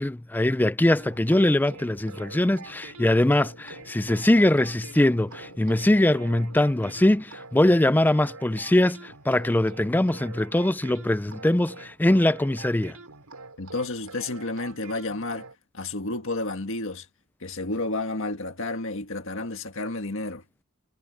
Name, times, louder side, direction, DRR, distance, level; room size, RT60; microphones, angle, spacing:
voice 1, 0.0-13.0, left 1 dB, 10° left, 0.4 m, -22 dB
sound 1, 1.0-15.5, right 3 dB, 85° right, 5.0 m, -45 dB
sound 2, 1.7-7.2, left 2 dB, 85° left, 3.1 m, -52 dB
voice 2, 13.6-15.5 15.7-17.1 17.4-20.4, left 2 dB, 60° left, 1.8 m, -31 dB
head